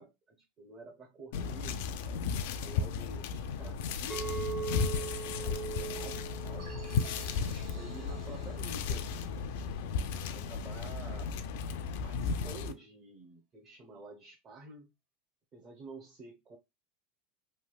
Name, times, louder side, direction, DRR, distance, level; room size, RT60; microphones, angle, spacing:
voice 1, 0.0-4.7 5.0-6.8 7.3-11.3 12.0-14.9 15.5-16.6, right 2 dB, 30° right, 0.8 m, -50 dB
sound 1, 1.3-12.7, left 6 dB, 70° left, 0.4 m, -35 dB
Chink clink, 4.1-8.4 8.9-9.3, right 7 dB, 5° left, 0.4 m, -41 dB
sound 2, 6.6-11.1, right 4 dB, 45° right, 1.1 m, -55 dB
3.3 x 2.7 x 2.3 m
supercardioid pair, 150°, 0 cm